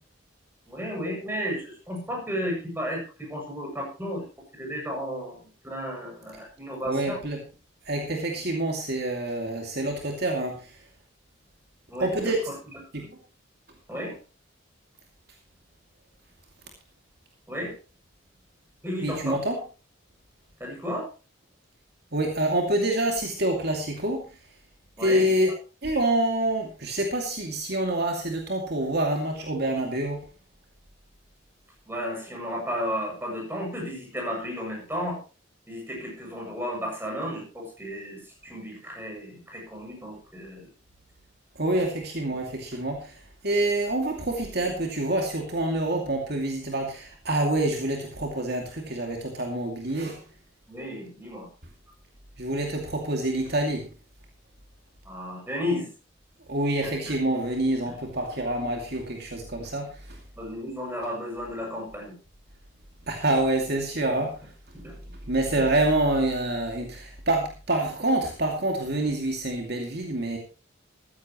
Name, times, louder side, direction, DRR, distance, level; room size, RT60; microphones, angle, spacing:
voice 1, 0.7-4.2 4.5-7.2 11.9-12.5 13.0-13.1 13.9-14.1 17.5-17.7 18.8-19.4 20.6-21.1 25.0-25.3 31.9-35.2 35.7-40.6 50.7-51.5 55.0-55.9 56.8-57.1 60.4-62.1 64.8-65.0 65.6-65.7, equal, 10° right, -1 dB, 7.3 m, -33 dB
voice 2, 6.9-7.4 7.9-10.7 12.0-12.4 12.9-13.0 19.0-19.6 22.1-24.3 25.0-25.5 25.8-30.2 41.6-43.1 43.4-50.2 52.4-53.9 56.5-60.2 63.1-64.4 65.3-70.4, right 1 dB, 55° right, 2 dB, 2.5 m, -27 dB
15.0 x 14.5 x 3.1 m, 0.34 s
head